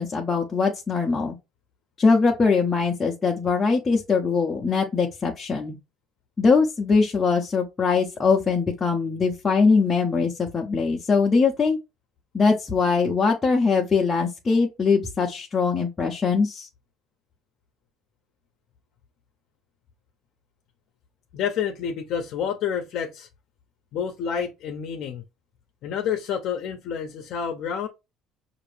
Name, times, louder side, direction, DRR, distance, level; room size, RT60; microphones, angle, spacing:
voice 1, 0.0-1.4 2.0-5.8 6.4-11.8 12.3-16.7, left 4 dB, 20° left, 0.6 m, -22 dB
voice 2, 21.3-23.3 23.9-25.2 25.8-27.9, left 7 dB, 55° left, 0.7 m, -29 dB
5.9 x 2.5 x 3.3 m
cardioid pair, 160°, 0 cm